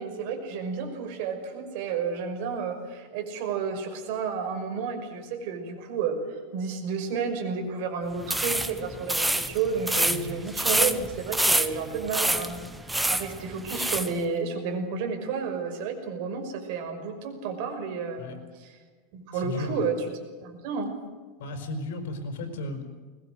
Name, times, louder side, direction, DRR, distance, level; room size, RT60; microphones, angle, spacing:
voice 1, 0.0-18.8 19.1-20.0 20.4-20.9, right 5 dB, 55° right, 4 dB, 5.7 m, -31 dB
sound 1, 8.2-14.1, right 1 dB, 5° right, 0.9 m, -27 dB
voice 2, 19.3-19.9 21.4-22.9, left 2 dB, 80° left, 7 dB, 5.4 m, -35 dB
21.5 x 21.0 x 7.9 m, 1.4 s
supercardioid pair, 165°, 0 cm